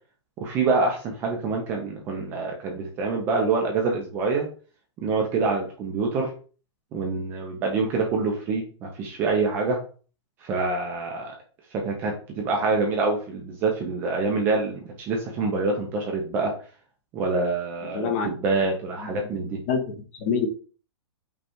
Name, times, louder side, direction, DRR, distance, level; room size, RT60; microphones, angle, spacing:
voice 1, 0.4-4.5 5.0-6.3 6.9-9.8 10.4-11.3 11.7-16.5 17.1-19.6, right 3 dB, 15° right, 1 dB, 0.4 m, -26 dB
voice 2, 17.9-18.3 19.0-19.2 19.7-20.5, left 6 dB, 30° left, 5 dB, 0.7 m, -26 dB
5.2 x 2.3 x 4.4 m, 0.39 s
hypercardioid pair, 180°, 15 cm